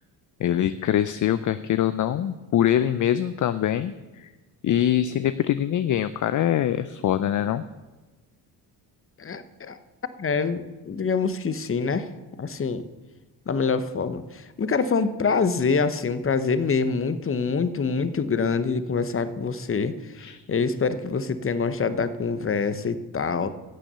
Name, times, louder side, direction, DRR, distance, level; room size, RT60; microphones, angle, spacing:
voice 1, 0.4-4.3 4.6-7.6 20.2-20.4, left 11 dB, 45° left, 13 dB, 0.5 m, -24 dB
voice 2, 9.2-9.8 10.2-12.1 12.4-12.9 13.5-23.5, left 5 dB, 30° left, 13 dB, 0.9 m, -25 dB
11.0 x 7.2 x 6.8 m, 1.2 s
supercardioid pair, 70°, 45 cm